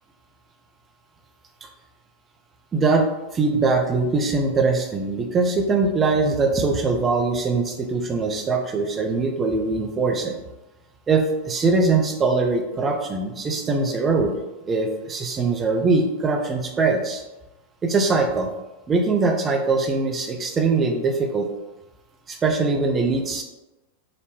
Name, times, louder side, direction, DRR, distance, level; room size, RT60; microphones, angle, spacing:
voice 1, 2.7-3.1 3.3-10.4 11.1-14.3 14.7-17.2 17.8-18.5 18.9-21.5 22.3-23.4, right 3 dB, 20° right, 4 dB, 0.5 m, -22 dB
3.9 x 2.2 x 2.9 m, 1.0 s
figure-of-eight pair, 90°, 0 cm